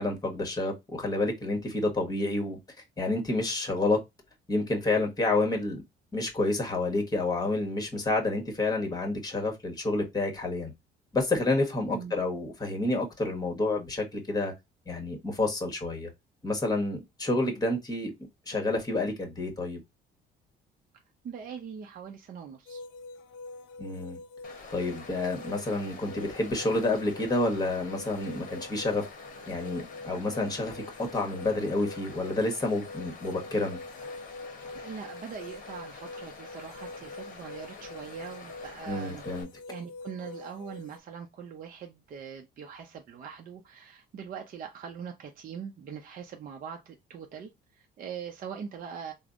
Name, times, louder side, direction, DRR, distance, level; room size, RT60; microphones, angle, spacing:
voice 1, 0.0-2.6 3.0-4.0 4.5-5.8 6.1-10.7 11.1-14.5 14.9-16.1 16.4-18.1 18.5-19.8 23.8-24.2 24.7-29.0 29.5-33.8 38.9-39.5, left 2 dB, 20° left, 1.2 m, -29 dB
voice 2, 21.2-22.8 34.7-39.2 39.7-49.1, right 7 dB, 45° right, 0.5 m, -42 dB
sound 1, 22.7-41.0, left 2 dB, 70° left, 0.5 m, -45 dB
Stream, 24.4-39.4, left 4 dB, 45° left, 0.9 m, -47 dB
3.3 x 2.0 x 2.4 m
supercardioid pair, 75°, 20 cm